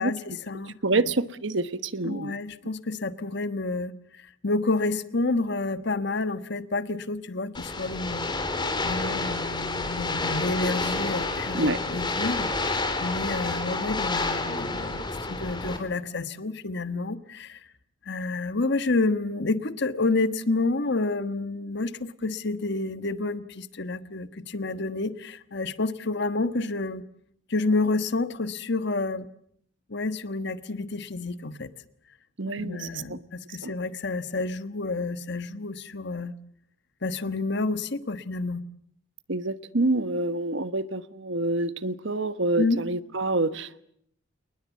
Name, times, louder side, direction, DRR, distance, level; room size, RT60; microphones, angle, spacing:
voice 1, 0.0-1.0 2.0-17.6 18.1-27.0 27.5-29.3 29.9-31.7 32.6-36.3 37.0-38.6 42.6-42.8, left 3 dB, 60° left, 12 dB, 1.3 m, -29 dB
voice 2, 0.6-2.3 11.5-11.8 32.4-33.2 33.6-33.7 39.3-43.8, right 2 dB, 65° right, 13 dB, 1.3 m, -27 dB
sound 1, 7.5-15.8, left 3 dB, 25° left, 3.4 m, -29 dB
28.5 x 20.5 x 8.3 m, 0.70 s
head